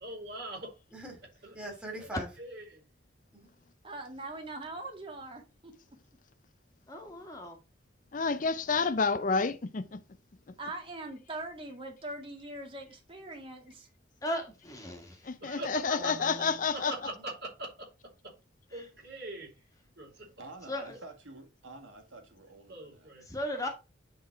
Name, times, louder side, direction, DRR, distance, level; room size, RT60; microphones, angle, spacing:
voice 1, 0.0-0.8 1.4-1.5 2.4-2.8 7.2-7.3 15.4-16.5 16.7-18.3 18.7-19.5 20.0-20.3 22.7-23.3, right 1 dB, 55° right, 4.9 m, -42 dB
voice 2, 0.9-1.3 1.5-2.3 3.3-3.5 15.9-16.6 17.0-17.3, right 1 dB, 5° right, 2.6 m, -43 dB
voice 3, 3.8-5.7 10.6-13.9, right 2 dB, 25° right, 2.1 m, -42 dB
voice 4, 6.9-7.6 14.2-15.2 18.7-18.9 20.7-21.0 23.3-23.7, left 1 dB, 15° left, 1.7 m, -36 dB
voice 5, 8.1-10.0 15.2-17.1, left 4 dB, 40° left, 0.5 m, -29 dB
voice 6, 20.4-23.1, right 2 dB, 80° right, 1.9 m, -49 dB
10.5 x 3.9 x 4.5 m
head